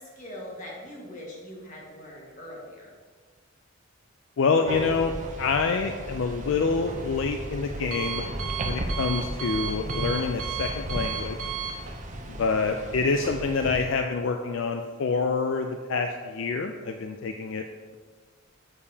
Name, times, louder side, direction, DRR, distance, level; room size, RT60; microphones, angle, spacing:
voice 1, 0.0-3.0, left 1 dB, 35° left, -4 dB, 1.5 m, -42 dB
voice 2, 4.4-5.1 5.4-8.3 8.6-11.4 12.3-17.6, left 4 dB, 65° left, 5 dB, 0.4 m, -27 dB
sound 1, 4.7-13.9, right 1 dB, 35° right, 0.5 m, -35 dB
Alarm, 6.5-12.9, right 7 dB, 85° right, 1.2 m, -36 dB
7.1 x 6.7 x 2.8 m, 1.5 s
head